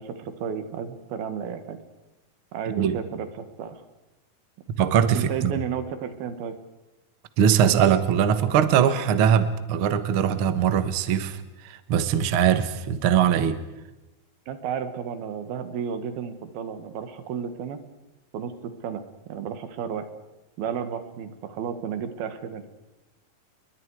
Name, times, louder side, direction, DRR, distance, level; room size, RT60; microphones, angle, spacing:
voice 1, 0.0-1.8 2.5-3.8 5.1-6.6 14.5-17.8 18.3-20.1 20.6-22.6, right 7 dB, 85° right, 3.6 m, -33 dB
voice 2, 4.8-5.5 7.4-13.6, right 8 dB, 60° right, 1.4 m, -21 dB
29.0 x 22.5 x 4.8 m
omnidirectional pair, 4.2 m